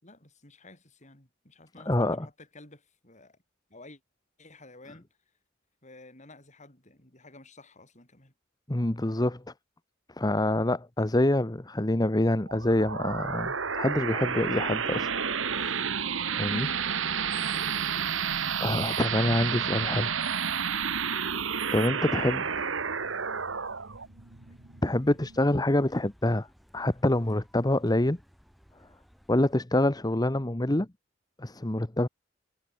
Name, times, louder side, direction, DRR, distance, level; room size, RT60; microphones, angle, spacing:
voice 1, 0.0-3.4 3.7-4.0 4.4-5.1 5.8-8.3 17.2-18.0, left 2 dB, 35° left, 5.9 m, -52 dB
voice 2, 1.9-2.3 8.7-9.4 10.2-15.9 16.3-16.7 18.6-20.1 21.7-22.4 24.8-26.5 26.7-28.2 29.3-30.9 31.4-32.1, left 1 dB, 20° left, 1.0 m, -26 dB
sound 1, 12.5-25.6, right 6 dB, 70° right, 1.7 m, -31 dB
sound 2, 15.4-29.6, equal, ahead, 7.4 m, -59 dB
head